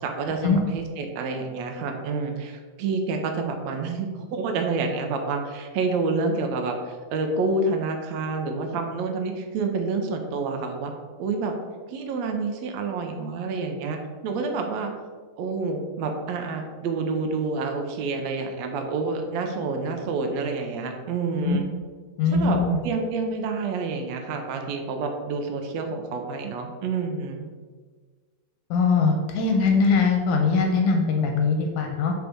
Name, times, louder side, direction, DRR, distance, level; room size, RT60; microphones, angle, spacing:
voice 1, 0.0-10.9 11.2-11.5 11.9-14.9 15.4-21.7 22.3-27.4, right 4 dB, 80° right, 4 dB, 1.5 m, -28 dB
voice 2, 22.2-22.8 28.7-32.1, left 4 dB, 75° left, 3 dB, 2.1 m, -21 dB
5.3 x 4.9 x 6.0 m, 1.5 s
omnidirectional pair, 4.0 m